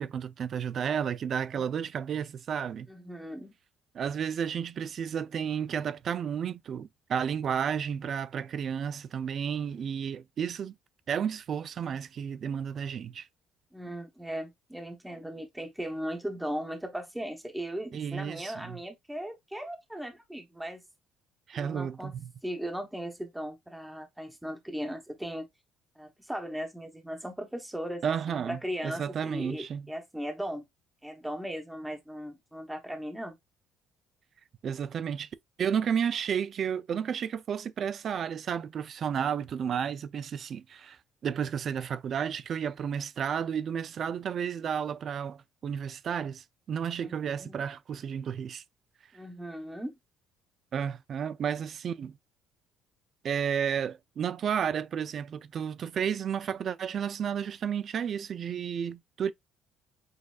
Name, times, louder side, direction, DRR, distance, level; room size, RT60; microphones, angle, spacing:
voice 1, 0.0-2.9 3.9-10.7 11.1-13.3 17.9-18.8 21.5-22.3 28.0-29.9 34.6-35.3 35.6-48.6 50.7-52.2 53.2-59.3, right 8 dB, 40° right, 0.4 m, -32 dB
voice 2, 2.9-3.5 13.7-20.8 21.5-22.2 22.4-25.5 26.0-30.6 31.0-33.4 47.0-47.6 49.1-49.9, equal, 5° right, 0.8 m, -38 dB
6.3 x 2.6 x 2.3 m
cardioid pair, 160°, 0 cm